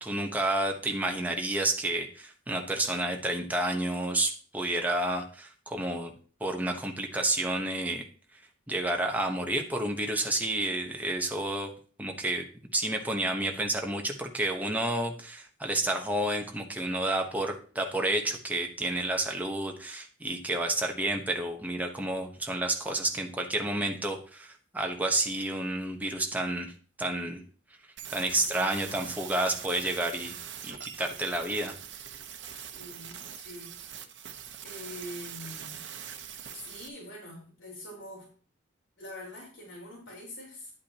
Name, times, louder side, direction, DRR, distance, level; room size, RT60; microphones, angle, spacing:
voice 1, 0.0-6.1 6.4-8.0 8.7-11.7 12.0-12.4 12.7-26.7 27.0-27.4 28.1-30.3 30.6-31.7, right 1 dB, 10° right, 3 dB, 1.0 m, -30 dB
sound 1, 28.0-36.9, right 9 dB, 70° right, 0.9 m, -43 dB
voice 2, 32.7-33.8 34.6-38.3 39.0-40.8, left 1 dB, 75° left, -3 dB, 4.0 m, -45 dB
10.5 x 8.4 x 2.9 m, 0.41 s
head